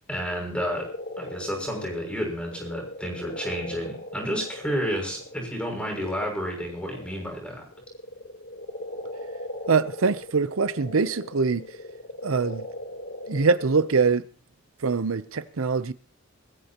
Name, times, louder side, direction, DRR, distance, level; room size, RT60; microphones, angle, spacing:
voice 1, 0.1-0.9 1.2-7.6, equal, 5° left, 6.4 m, -31 dB
sound 1, 0.6-7.3 7.7-14.0, left 1 dB, 55° left, 3.5 m, -39 dB
voice 2, 9.7-11.8 12.2-12.7 13.3-14.2 14.8-15.9, right 4 dB, 80° right, 0.7 m, -23 dB
22.5 x 14.5 x 3.0 m
head